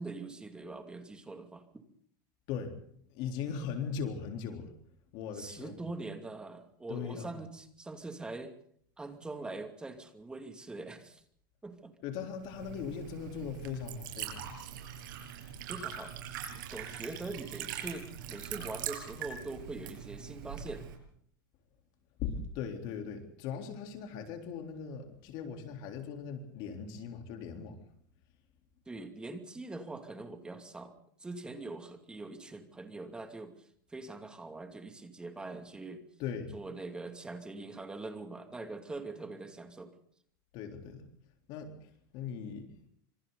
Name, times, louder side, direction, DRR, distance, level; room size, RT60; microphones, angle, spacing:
voice 1, 0.0-1.6 5.4-8.5 9.0-11.2 11.6-11.9 15.7-16.1 16.5-20.8 28.9-30.9 31.2-33.5 33.9-36.0 36.5-39.9, right 3 dB, 10° right, 6 dB, 2.6 m, -43 dB
voice 2, 3.1-4.7 5.1-5.8 6.9-7.3 12.0-14.6 22.2-27.8 36.2-36.6 40.5-41.1 41.5-42.8, left 7 dB, 45° left, 4 dB, 3.9 m, -39 dB
Liquid, 12.4-20.9, right 9 dB, 70° right, 7.1 m, -42 dB
28.5 x 26.5 x 4.1 m, 0.65 s
supercardioid pair, 155°, 11 cm